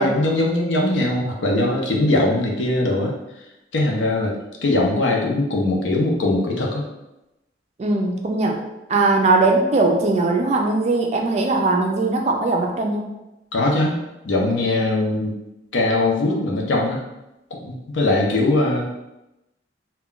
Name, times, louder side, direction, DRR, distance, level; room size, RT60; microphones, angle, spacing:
voice 1, 0.0-3.1 3.7-4.3 4.6-6.9 13.5-15.3 15.7-17.0 17.5-19.0, left 2 dB, 80° left, -1 dB, 0.6 m, -21 dB
voice 2, 7.8-8.6 8.9-13.0, right 3 dB, 35° right, 2 dB, 0.3 m, -19 dB
2.3 x 2.2 x 3.7 m, 0.95 s
head